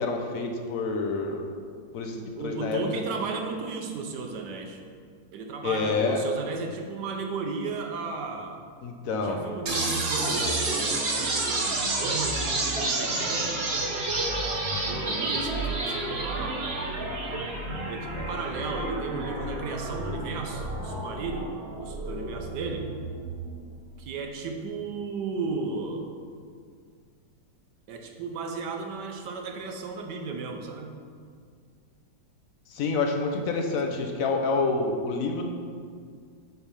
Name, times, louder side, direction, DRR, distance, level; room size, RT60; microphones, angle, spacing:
voice 1, 0.0-1.5 1.9-3.0 5.6-6.2 8.8-9.5 32.7-35.4, left 4 dB, 65° left, 2 dB, 0.9 m, -28 dB
voice 2, 2.2-4.8 5.3-8.6 9.2-13.7 14.9-16.7 17.8-21.5 21.8-22.8 24.0-26.1 27.9-30.9 33.8-33.9, right 4 dB, 70° right, 3 dB, 1.3 m, -34 dB
sound 1, 9.6-23.6, right 2 dB, 40° right, 1.0 m, -30 dB
8.0 x 3.4 x 5.6 m, 2.1 s
omnidirectional pair, 2.0 m